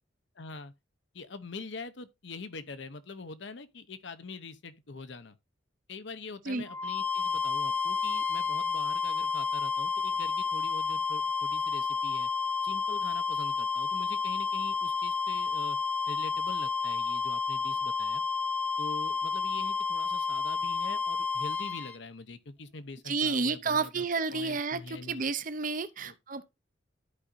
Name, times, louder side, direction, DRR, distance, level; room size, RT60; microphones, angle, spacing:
voice 1, 0.4-0.7 1.1-5.4 5.9-12.3 12.6-15.8 16.1-18.2 18.8-24.0 24.3-25.2 26.0-26.1, left 3 dB, 70° left, 0.8 m, -44 dB
sound 1, 6.7-22.0, left 5 dB, 10° left, 1.0 m, -30 dB
voice 2, 23.1-26.6, right 4 dB, 45° right, 0.6 m, -31 dB
13.0 x 4.9 x 2.6 m
head